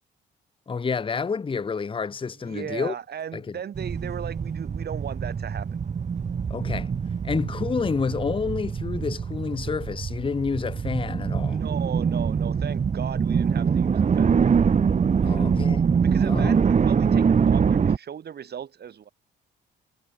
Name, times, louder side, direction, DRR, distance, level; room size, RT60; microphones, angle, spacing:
voice 1, 0.7-2.9 3.3-3.6 6.5-6.9 7.2-11.6 15.2-15.8 16.3-16.6, left 5 dB, 25° left, 0.9 m, -29 dB
voice 2, 2.4-5.7 11.5-14.4 15.2-15.5 16.0-19.1, right 8 dB, 55° right, 2.3 m, -37 dB
sound 1, 3.8-18.0, right 6 dB, 35° right, 1.2 m, -24 dB
cardioid pair, 90°, 20 cm